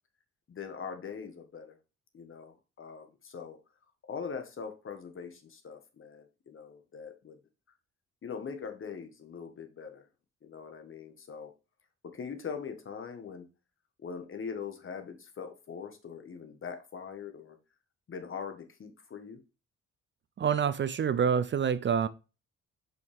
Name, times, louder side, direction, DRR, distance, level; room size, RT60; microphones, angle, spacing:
voice 1, 0.5-1.8 2.1-3.6 4.1-7.4 8.2-10.0 10.4-11.5 12.0-13.5 14.0-17.6 18.1-19.4, left 6 dB, 45° left, 1.6 m, -42 dB
voice 2, 20.4-22.1, right 7 dB, 40° right, 0.5 m, -27 dB
6.2 x 5.5 x 3.6 m
cardioid pair, 90°, 30 cm